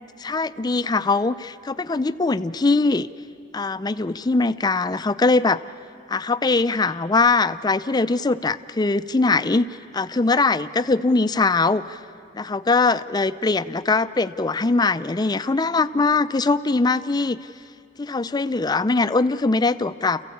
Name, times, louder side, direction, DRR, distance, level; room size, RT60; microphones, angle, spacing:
voice 1, 0.2-3.1 3.5-5.6 6.1-12.0 12.3-17.4 18.0-20.2, left 3 dB, 20° left, 14 dB, 0.5 m, -21 dB
29.0 x 15.5 x 8.5 m, 2.5 s
head